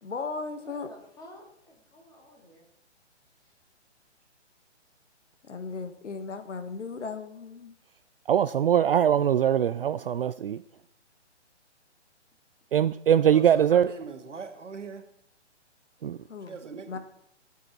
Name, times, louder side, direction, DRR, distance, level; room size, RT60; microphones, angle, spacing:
voice 1, 0.0-0.9 5.4-7.7 16.3-17.0, left 4 dB, 80° left, 1.6 m, -36 dB
voice 2, 0.6-2.6, left 1 dB, 10° left, 2.8 m, -51 dB
voice 3, 8.3-10.6 12.7-13.9 16.0-16.2, right 9 dB, 55° right, 0.4 m, -22 dB
voice 4, 13.3-15.1 16.5-17.0, right 5 dB, 85° right, 2.3 m, -41 dB
24.0 x 8.4 x 4.4 m
hypercardioid pair, 155°, 35 cm